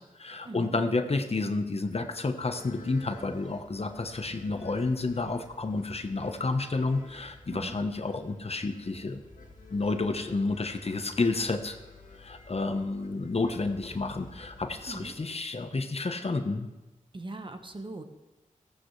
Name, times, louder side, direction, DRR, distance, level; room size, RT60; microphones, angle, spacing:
voice 1, 0.0-9.2 9.7-11.8 12.2-16.7, left 3 dB, 45° left, 7 dB, 1.1 m, -30 dB
sound 1, 2.4-15.2, left 3 dB, 75° left, 2.1 m, -52 dB
voice 2, 17.1-18.0, right 2 dB, 35° right, 6 dB, 1.3 m, -40 dB
15.0 x 14.5 x 3.2 m, 1.1 s
cardioid pair, 55°, 14 cm